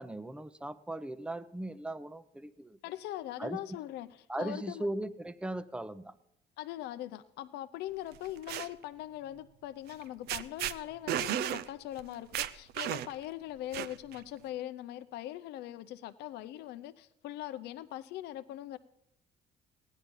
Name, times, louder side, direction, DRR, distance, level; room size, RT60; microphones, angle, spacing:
voice 1, 0.0-2.8 3.4-3.6 4.3-6.1, right 1 dB, 5° right, 15 dB, 0.6 m, -38 dB
voice 2, 2.8-4.9 6.6-18.8, left 13 dB, 80° left, 11 dB, 0.5 m, -41 dB
sound 1, 8.1-8.7 9.9-10.0 10.3-10.7 11.1-11.6 12.0-12.1 12.3-13.2 13.7-14.2, right 11 dB, 70° right, 0.5 m, -33 dB
16.0 x 10.0 x 5.3 m, 0.79 s
cardioid pair, 110°, 17 cm